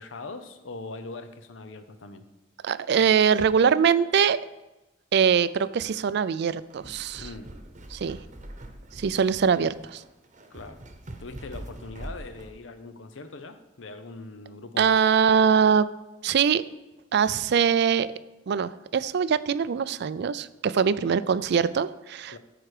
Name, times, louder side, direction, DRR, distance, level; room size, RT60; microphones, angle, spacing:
voice 1, 0.0-2.2 7.2-7.5 10.5-10.8 11.2-15.0 21.0-21.1 22.3-22.4, left 3 dB, 80° left, 10 dB, 0.8 m, -41 dB
voice 2, 2.6-4.4 5.1-7.3 7.9-8.2 8.9-10.0 14.8-15.9 16.2-16.6 17.1-18.1 18.5-22.3, right 7 dB, 60° right, 16 dB, 0.4 m, -22 dB
sound 1, 6.5-12.6, right 1 dB, 40° right, 0.9 m, -43 dB
13.5 x 4.9 x 4.9 m, 1.0 s
head